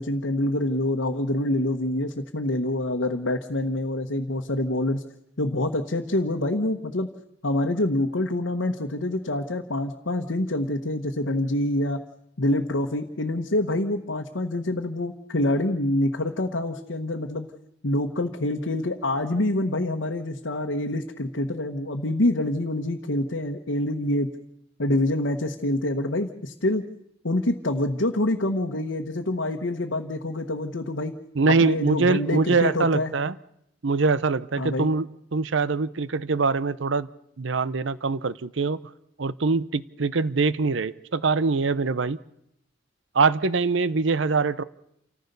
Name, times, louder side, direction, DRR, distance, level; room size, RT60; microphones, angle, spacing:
voice 1, 0.0-5.0 5.4-7.1 7.4-12.0 12.4-17.5 17.8-24.3 24.8-26.8 27.2-31.2 31.6-33.1 34.6-34.9, left 1 dB, 70° left, 1 dB, 1.2 m, -26 dB
voice 2, 31.3-33.3 33.8-37.1 37.4-38.8 39.2-42.2 43.1-44.6, right 4 dB, 70° right, 18 dB, 0.7 m, -23 dB
28.5 x 14.5 x 6.8 m, 0.76 s
head